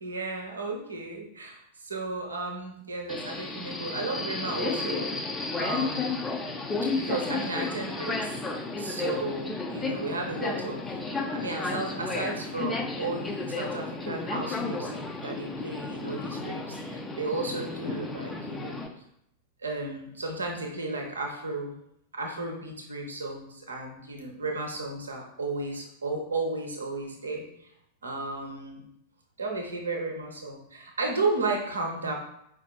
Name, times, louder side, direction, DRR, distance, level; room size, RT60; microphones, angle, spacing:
voice 1, 0.0-5.1 5.6-6.2 6.8-8.4 8.8-10.8 11.1-18.8 19.6-21.8 22.1-27.7 28.0-28.8 29.4-32.1, right 3 dB, 75° right, 1 dB, 0.6 m, -34 dB
Subway metro underground, 3.1-18.9, left 3 dB, 15° left, 0.4 m, -33 dB
5.0 x 2.4 x 2.3 m, 0.76 s
figure-of-eight pair, 90°, 0 cm